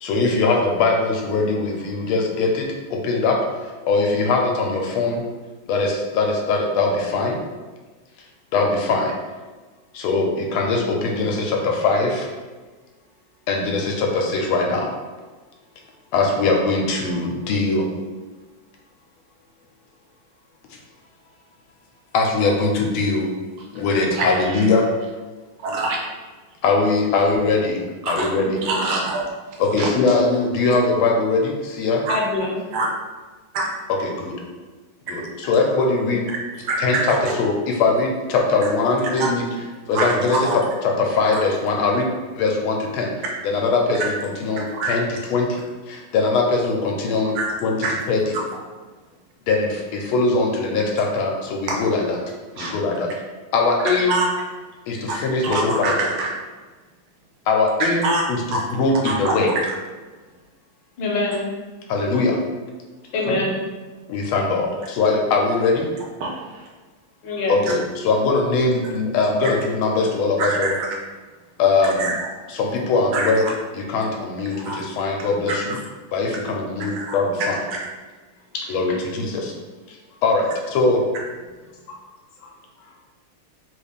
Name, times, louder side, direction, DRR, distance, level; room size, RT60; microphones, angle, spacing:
voice 1, 0.0-3.4 3.6-5.2 5.7-7.4 8.5-9.1 9.9-12.3 13.5-14.9 16.1-17.9 22.1-23.3 23.7-24.8 26.6-27.8 28.1-28.6 29.6-32.0 34.0-34.4 35.1-36.2 36.8-37.0 37.4-39.4 39.9-40.5 40.8-42.1 42.3-43.1 43.4-45.6 45.9-47.3 47.6-47.7 48.1-48.4 49.5-52.2 52.6-53.1 53.5-54.2 54.9-56.1 57.5-58.4 58.7-59.5 61.9-62.4 64.1-65.9 67.5-70.7 71.6-72.1 72.5-73.4 73.7-75.8 76.1-77.6 78.7-79.5 79.9-81.0, left 3 dB, 90° left, 0 dB, 1.5 m, -21 dB
voice 2, 24.1-24.7 25.6-26.0 28.0-28.3 28.6-29.2 29.8-29.9 32.1-32.2 32.7-32.9 33.5-33.6 36.6-37.2 39.2-39.3 39.9-40.6 44.0-44.1 44.7-44.9 47.3-47.5 47.8-47.9 51.7-51.8 52.6-52.7 54.1-54.3 55.1-56.3 57.8-58.6 59.0-59.3 66.2-66.7 70.4-70.7 71.8-72.1 73.1-73.5 74.5-74.8 75.7-75.8 76.9-77.1 77.7-77.8, right 3 dB, 80° right, -1 dB, 1.6 m, -24 dB
voice 3, 32.1-32.6 61.0-61.5 63.1-63.6 67.2-67.6 78.9-79.0 81.9-82.0 82.4-82.5 82.8-82.9, left 2 dB, 70° left, -1 dB, 1.2 m, -24 dB
3.8 x 2.4 x 3.4 m, 1.3 s
omnidirectional pair, 2.3 m